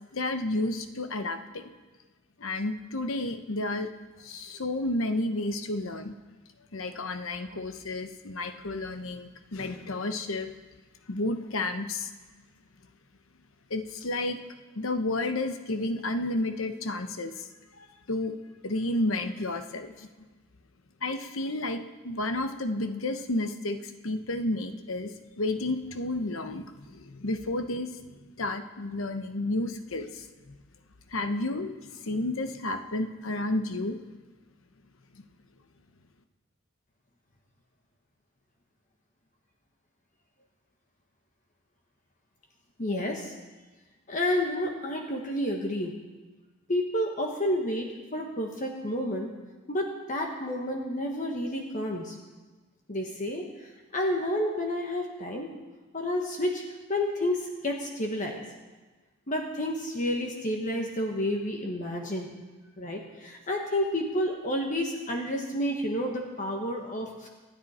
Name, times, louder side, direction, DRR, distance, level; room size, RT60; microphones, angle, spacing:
voice 1, 0.1-1.7 2.4-3.9 4.2-6.1 6.7-10.5 11.1-12.1 13.7-14.4 14.7-17.5 17.8-18.3 18.6-20.1 21.0-25.1 25.4-28.0 28.4-30.6 31.1-34.0 35.2-35.3, left 2 dB, 75° left, 8 dB, 1.0 m, -31 dB
voice 2, 42.8-43.3 44.1-45.9 46.7-49.3 49.7-52.2 52.9-55.5 55.9-56.6 56.9-58.4 59.3-62.3 62.8-67.3, left 1 dB, 40° left, 1 dB, 1.4 m, -30 dB
26.5 x 9.4 x 4.3 m, 1.3 s
head